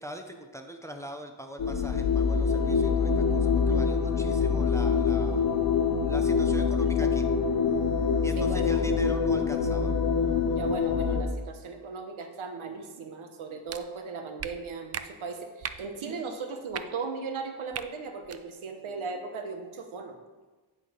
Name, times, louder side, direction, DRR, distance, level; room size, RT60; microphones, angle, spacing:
voice 1, 0.0-5.4 6.0-7.2 8.2-9.9, right 1 dB, 5° left, 5 dB, 0.6 m, -42 dB
sound 1, 1.6-11.2, left 5 dB, 45° left, 0.8 m, -25 dB
voice 2, 3.7-4.2 8.4-8.8 10.5-20.2, right 4 dB, 75° right, 6 dB, 1.1 m, -37 dB
sound 2, 13.7-13.8 14.4-14.5 14.9-15.0 15.6-15.8 16.7-16.8 17.7-17.9 18.2-18.4, right 8 dB, 35° right, 0.4 m, -36 dB
10.0 x 4.2 x 5.0 m, 1.3 s
cardioid pair, 90°, 48 cm